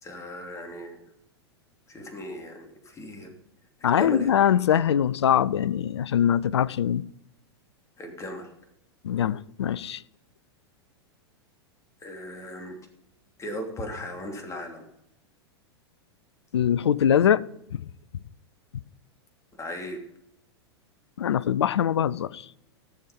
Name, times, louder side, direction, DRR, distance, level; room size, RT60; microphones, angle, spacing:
voice 1, 0.0-1.0 1.9-3.3 3.8-4.3 8.0-8.5 12.0-12.7 13.4-14.8 19.6-20.0, left 1 dB, 20° left, 3.1 m, -37 dB
voice 2, 3.8-7.0 9.0-10.0 16.5-17.4 17.7-17.8 21.2-22.4, left 9 dB, 80° left, 0.5 m, -22 dB
15.0 x 7.2 x 5.4 m
hypercardioid pair, 100°, 14 cm